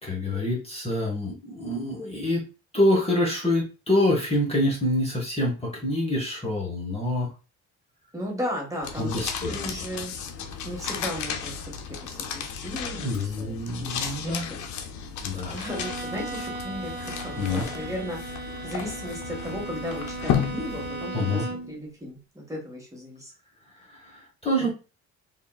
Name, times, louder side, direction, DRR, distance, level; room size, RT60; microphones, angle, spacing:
voice 1, 0.0-2.4 2.7-7.3 9.0-9.8 13.0-14.5 15.2-15.5 17.4-17.6 21.1-21.4 23.9-24.7, left 1 dB, 20° left, -3 dB, 1.1 m, -26 dB
voice 2, 8.1-10.1 10.6-11.6 12.0-14.6 15.5-18.2 18.6-23.3 24.6-24.7, equal, 10° right, -2 dB, 1.4 m, -35 dB
sound 1, 8.8-21.4, left 7 dB, 75° left, 0.6 m, -34 dB
Bowed string instrument, 15.6-21.8, right 2 dB, 35° right, 0.7 m, -36 dB
3.7 x 2.5 x 2.3 m, 0.32 s
cardioid pair, 90°, 30 cm